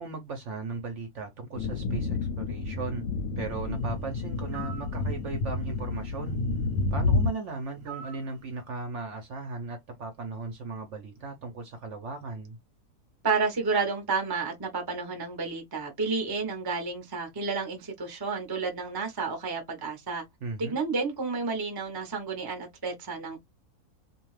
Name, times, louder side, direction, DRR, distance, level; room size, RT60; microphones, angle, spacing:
voice 1, 0.0-3.1 3.4-6.4 6.9-12.6 20.4-20.8, right 4 dB, 65° right, 0.8 m, -37 dB
sound 1, 1.6-7.3, left 3 dB, 70° left, 0.9 m, -29 dB
sound 2, 4.5-4.9 7.9-8.3, right 8 dB, 85° right, 0.5 m, -42 dB
voice 2, 13.2-20.2 20.6-23.4, right 4 dB, 25° right, 0.5 m, -31 dB
2.5 x 2.3 x 3.1 m
omnidirectional pair, 1.7 m